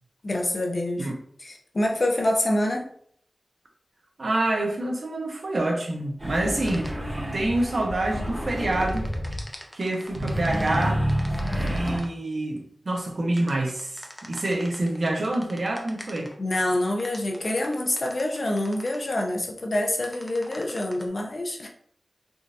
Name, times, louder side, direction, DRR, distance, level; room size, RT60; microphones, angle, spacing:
voice 1, 0.2-1.1 1.4-2.9 16.4-21.7, left 1 dB, 55° left, 1 dB, 0.6 m, -26 dB
voice 2, 4.2-6.9 7.3-9.1 9.7-11.0 11.7-16.3, right 1 dB, 65° right, 1 dB, 0.8 m, -27 dB
sound 1, 6.2-9.4 10.1-12.0, equal, 35° right, 1.3 m, -29 dB
sound 2, 6.7-6.9 8.7-12.1 13.4-16.3 17.0-19.0 20.0-21.0, equal, 5° left, 0.6 m, -43 dB
3.6 x 2.6 x 2.5 m, 0.63 s
wide cardioid pair, 70°, 0 cm